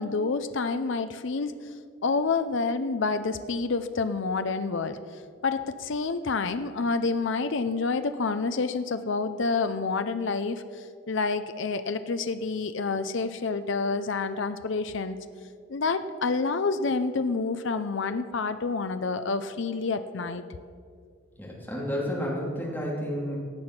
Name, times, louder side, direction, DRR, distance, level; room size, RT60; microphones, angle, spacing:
voice 1, 0.0-1.6 2.0-5.0 5.4-15.2 15.7-20.4, left 4 dB, 55° left, 10 dB, 0.5 m, -28 dB
voice 2, 21.4-23.4, equal, 10° left, -4 dB, 2.8 m, -31 dB
16.0 x 8.8 x 5.9 m, 2.2 s
head